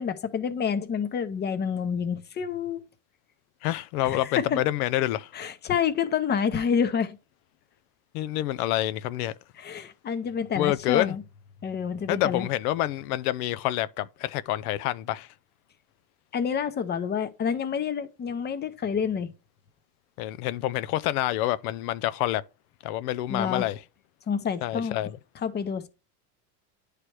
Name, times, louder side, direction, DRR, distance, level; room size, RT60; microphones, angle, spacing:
voice 1, 0.0-2.8 4.0-4.6 5.3-7.2 9.6-11.2 11.6-12.5 16.3-19.3 23.3-23.7 24.3-25.0 25.4-25.9, left 7 dB, 25° left, 0.7 m, -28 dB
voice 2, 3.6-5.3 8.1-9.3 10.6-11.1 12.1-15.3 20.2-22.4 22.8-23.8 24.6-25.1, left 14 dB, 90° left, 0.6 m, -27 dB
9.7 x 3.3 x 4.4 m
supercardioid pair, 120°, 43 cm